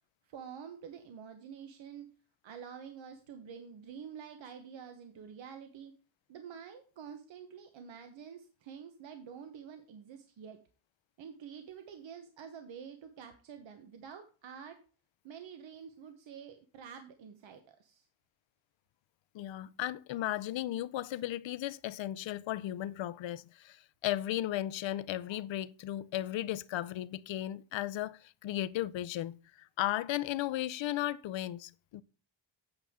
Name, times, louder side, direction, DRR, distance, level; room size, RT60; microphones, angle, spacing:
voice 1, 0.2-2.1 2.4-5.9 6.3-10.6 11.2-14.8 15.2-18.1, right 7 dB, 65° right, 1.1 m, -48 dB
voice 2, 19.3-32.0, left 13 dB, 70° left, 0.6 m, -35 dB
8.8 x 6.9 x 3.6 m
wide cardioid pair, 150°, 48 cm